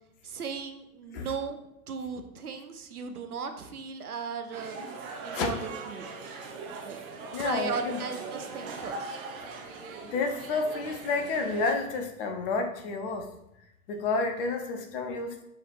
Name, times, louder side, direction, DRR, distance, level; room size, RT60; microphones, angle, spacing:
voice 1, 0.2-1.6 1.9-4.8 5.2-6.1 6.8-7.0 7.4-9.2, right 5 dB, 85° right, 6 dB, 0.6 m, -36 dB
sound 1, 4.5-11.7, right 4 dB, 40° right, 0.7 m, -40 dB
voice 2, 7.3-8.0 10.0-13.3 13.9-15.4, left 4 dB, 40° left, 4 dB, 0.7 m, -30 dB
6.1 x 3.3 x 2.5 m, 0.81 s
figure-of-eight pair, 95°, 43 cm